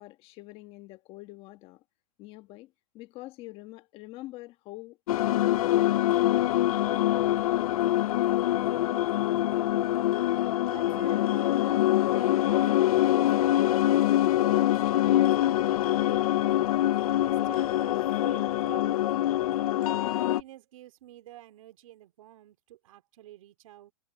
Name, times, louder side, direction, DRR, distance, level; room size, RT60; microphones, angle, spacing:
voice 1, 0.0-1.8 2.2-6.0, left 19 dB, 30° left, 1.3 m, -45 dB
sound 1, 5.1-20.4, left 13 dB, 70° left, 0.5 m, -24 dB
voice 2, 10.4-16.3 17.0-19.1 19.7-23.9, right 14 dB, 60° right, 3.2 m, -49 dB
hypercardioid pair, 155°, 19 cm